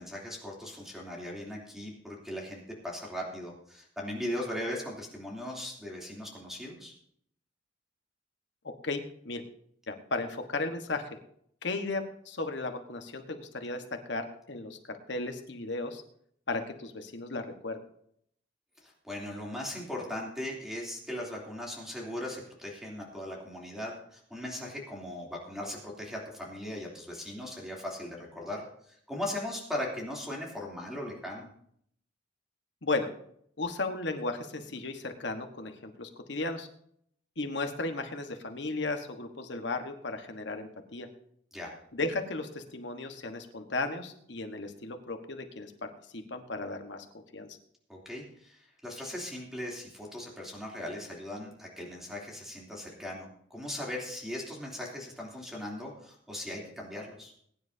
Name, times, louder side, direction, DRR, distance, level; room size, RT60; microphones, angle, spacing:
voice 1, 0.0-6.9 18.8-31.5 41.5-41.7 47.9-57.3, left 1 dB, ahead, -3 dB, 3.0 m, -39 dB
voice 2, 8.8-9.4 9.9-11.1 11.6-13.8 14.1-16.0 16.5-17.8 32.8-33.1 33.6-36.7 37.4-41.1 41.9-47.5, left 3 dB, 65° left, 6 dB, 1.3 m, -35 dB
21.5 x 10.0 x 2.8 m, 0.68 s
head